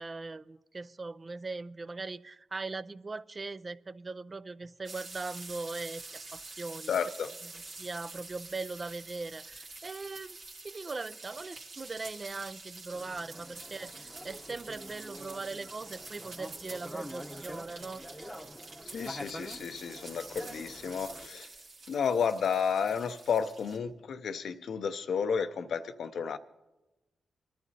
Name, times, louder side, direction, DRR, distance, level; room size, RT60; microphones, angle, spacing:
voice 1, 0.0-6.9 7.4-10.4 10.6-18.0, right 3 dB, 40° right, 0.4 m, -40 dB
sound 1, 4.8-23.8, right 3 dB, 75° right, 1.9 m, -47 dB
voice 2, 6.9-7.3 18.9-21.5 21.9-26.4, left 6 dB, 75° left, 0.6 m, -32 dB
sound 2, 12.9-21.3, equal, 5° left, 0.9 m, -46 dB
25.5 x 11.0 x 2.8 m
supercardioid pair, 45°, 0 cm